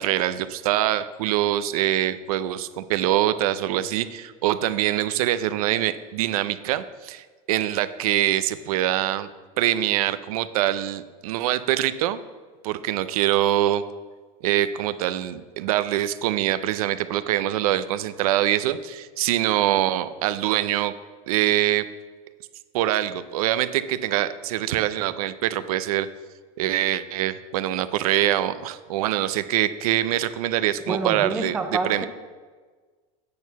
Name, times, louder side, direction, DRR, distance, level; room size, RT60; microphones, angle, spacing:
voice 1, 0.0-9.3 9.6-12.2 12.6-13.8 14.4-20.9 21.3-21.9 22.7-26.1 26.6-31.6 31.8-32.1, right 13 dB, 80° right, 13 dB, 0.5 m, -24 dB
voice 2, 30.9-32.1, right 3 dB, 5° right, 6 dB, 0.4 m, -27 dB
8.4 x 4.6 x 6.9 m, 1.4 s
supercardioid pair, 170°, 18 cm